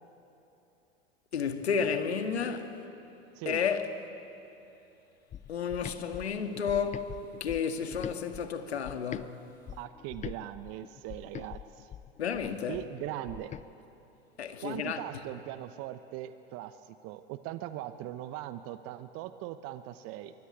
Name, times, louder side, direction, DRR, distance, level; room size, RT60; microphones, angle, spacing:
voice 1, 1.3-2.7 3.5-3.9 5.5-7.1 7.4-9.4 12.2-12.8 14.4-15.0, left 6 dB, 80° left, 1.9 m, -31 dB
sound 1, 5.3-9.3 9.7-13.7, left 10 dB, 25° left, 0.6 m, -44 dB
voice 2, 9.8-11.9 12.7-13.5 14.6-20.3, right 14 dB, 45° right, 1.0 m, -40 dB
25.5 x 22.5 x 9.2 m
hypercardioid pair, 85°, 32 cm